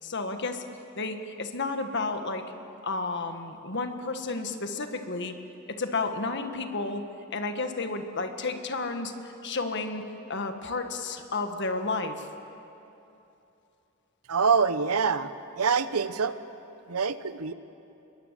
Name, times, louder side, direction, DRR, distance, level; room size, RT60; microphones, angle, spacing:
voice 1, 0.0-0.6 0.9-2.4 2.8-5.3 5.7-7.0 7.3-9.1 9.4-12.3, left 3 dB, 55° left, 6 dB, 1.7 m, -32 dB
voice 2, 14.3-15.3 15.6-16.3 16.9-17.5, right 5 dB, 90° right, 13 dB, 0.9 m, -25 dB
27.0 x 22.0 x 7.6 m, 2.8 s
head